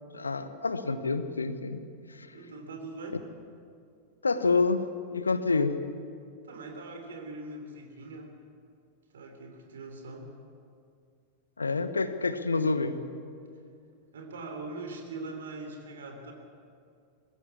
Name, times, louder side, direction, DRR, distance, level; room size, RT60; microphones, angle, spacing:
voice 1, 0.1-1.8 2.1-2.3 3.1-3.2 4.2-5.8 11.6-13.0, left 4 dB, 75° left, 11 dB, 1.1 m, -28 dB
voice 2, 2.3-3.2 6.4-8.3 9.1-10.3 14.1-16.3, right 2 dB, 65° right, 4 dB, 3.4 m, -41 dB
21.0 x 16.0 x 8.4 m, 2.4 s
figure-of-eight pair, 90°, 0 cm